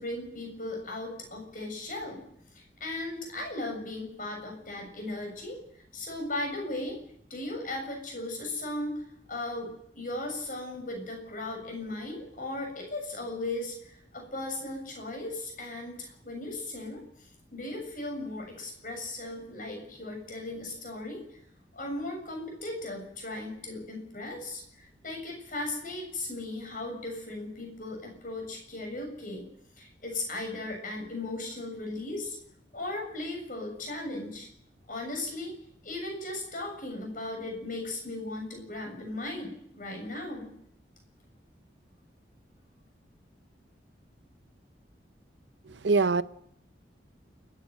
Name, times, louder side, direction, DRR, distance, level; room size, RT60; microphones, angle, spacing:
voice 1, 0.0-2.3 2.5-5.6 5.9-7.0 7.3-9.0 9.3-21.2 21.7-29.5 29.8-32.4 32.7-34.5 34.9-35.5 35.8-40.5, left 2 dB, 50° left, 7.2 m, -37 dB
voice 2, 45.7-46.2, right 3 dB, 85° right, 0.7 m, -24 dB
28.5 x 11.0 x 9.1 m
head